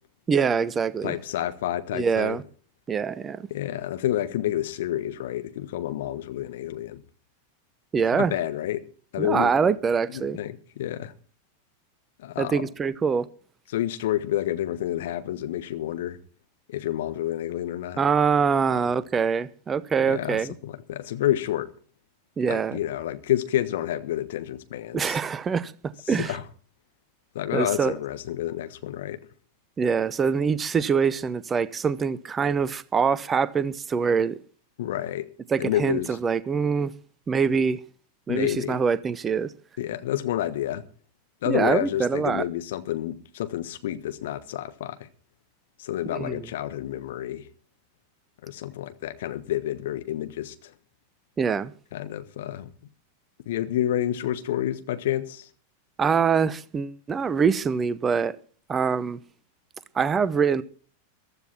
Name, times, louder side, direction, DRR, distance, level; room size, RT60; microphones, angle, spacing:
voice 1, 0.3-1.1 1.9-2.4 2.9-3.4 7.9-8.3 9.2-10.4 12.4-13.3 18.0-20.5 22.4-22.8 24.9-25.7 26.1-26.3 27.5-27.9 29.8-34.4 35.5-36.9 37.3-37.8 38.3-39.5 41.5-42.4 46.1-46.4 51.4-51.7 56.0-58.4 58.7-59.2 59.9-60.6, right 6 dB, 20° right, 0.8 m, -24 dB
voice 2, 1.0-2.4 3.5-7.0 8.1-8.8 9.1-9.7 10.1-11.1 12.2-12.7 13.7-16.2 16.7-18.0 18.7-18.9 20.1-21.7 22.5-25.2 26.1-26.4 27.3-29.3 34.8-35.3 35.6-36.2 38.3-38.8 39.8-40.8 41.4-45.1 45.8-47.5 48.4-50.7 51.9-52.7 53.4-55.5, left 12 dB, 55° left, 1.4 m, -29 dB
15.0 x 13.0 x 4.4 m
figure-of-eight pair, 90°, 0 cm